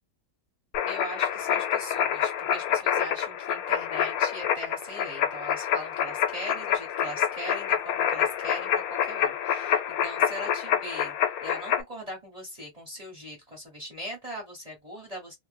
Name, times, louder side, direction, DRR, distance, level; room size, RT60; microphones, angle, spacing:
sound 1, 0.7-11.8, left 9 dB, 80° left, 1.0 m, -27 dB
voice 1, 0.8-11.1 11.4-15.4, equal, 30° right, 1.0 m, -40 dB
2.5 x 2.1 x 3.2 m
omnidirectional pair, 1.6 m